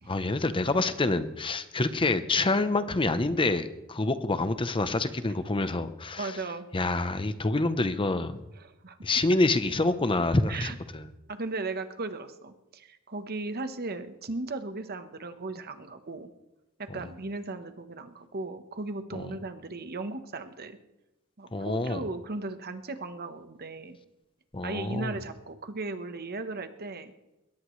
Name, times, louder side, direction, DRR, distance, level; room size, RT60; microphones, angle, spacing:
voice 1, 0.1-6.4 6.7-8.4 9.0-11.1 16.9-17.0 19.1-19.3 21.5-22.0 24.5-25.2, left 2 dB, 25° left, 11 dB, 0.8 m, -27 dB
voice 2, 6.2-6.7 8.6-9.0 10.5-10.8 11.3-16.3 16.8-20.8 21.4-24.0 24.6-27.1, right 3 dB, 45° right, 9 dB, 1.1 m, -36 dB
22.0 x 18.0 x 3.2 m, 0.97 s
head